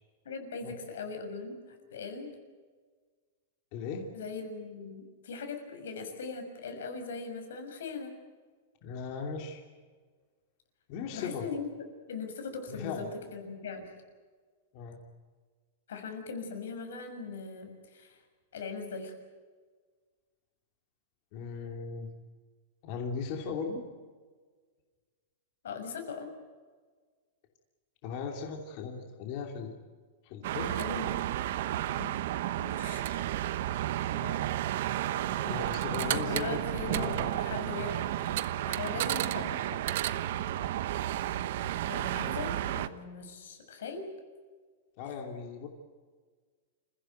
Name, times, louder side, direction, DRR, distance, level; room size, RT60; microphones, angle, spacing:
voice 1, 0.2-2.3 4.1-8.1 11.1-11.7 12.1-13.9 15.9-18.2 18.5-19.1 25.6-26.3 30.6-31.1 31.9-32.1 32.5-33.0 34.1-34.4 36.0-38.1 38.7-39.8 41.8-44.1, left 4 dB, 90° left, 5 dB, 6.3 m, -40 dB
voice 2, 3.7-4.1 8.8-9.6 10.9-11.4 12.7-13.1 14.7-15.0 21.3-22.1 22.8-23.9 28.0-29.7 30.2-30.7 35.4-37.3 45.0-45.7, left 5 dB, 35° left, 2 dB, 2.9 m, -37 dB
sound 1, 30.4-42.9, right 13 dB, 50° right, 1.0 m, -32 dB
28.5 x 16.0 x 9.2 m, 1.5 s
supercardioid pair, 175°, 0 cm